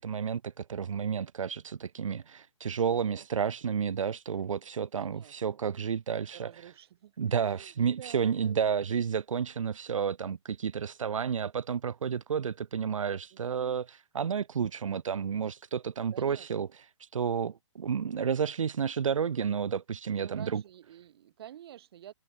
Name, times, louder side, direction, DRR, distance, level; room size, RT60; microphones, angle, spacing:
voice 1, 0.0-6.5 7.2-16.7 17.0-20.6, right 7 dB, 85° right, 0.6 m, -31 dB
voice 2, 2.9-3.2 5.0-5.8 6.3-8.7 13.3-13.8 16.1-16.6 20.2-22.1, right 11 dB, 50° right, 1.5 m, -50 dB
hypercardioid pair, 140°, 16 cm